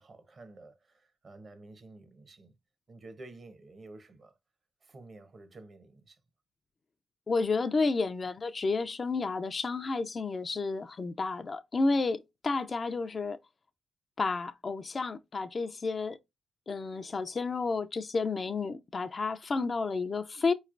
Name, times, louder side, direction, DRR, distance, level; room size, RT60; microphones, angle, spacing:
voice 1, 0.0-2.6 2.9-4.3 4.8-6.2, right 2 dB, 50° right, 0.9 m, -51 dB
voice 2, 7.3-13.4 14.2-16.2 16.7-20.5, left 3 dB, 45° left, 0.4 m, -31 dB
4.2 x 3.1 x 2.5 m
supercardioid pair, 50°, 0 cm